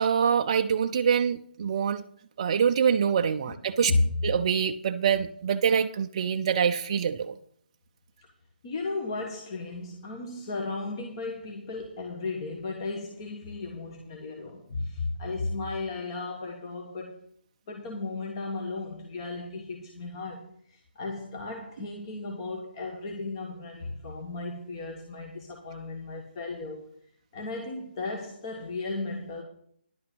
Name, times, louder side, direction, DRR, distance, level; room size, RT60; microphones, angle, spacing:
voice 1, 0.0-2.0 2.4-3.9 4.2-7.4, right 7 dB, 30° right, 6 dB, 0.4 m, -25 dB
voice 2, 8.6-17.2 17.7-26.9 27.3-29.4, left 3 dB, 25° left, 2 dB, 1.3 m, -34 dB
11.0 x 5.8 x 7.7 m, 0.63 s
hypercardioid pair, 170°, 6 cm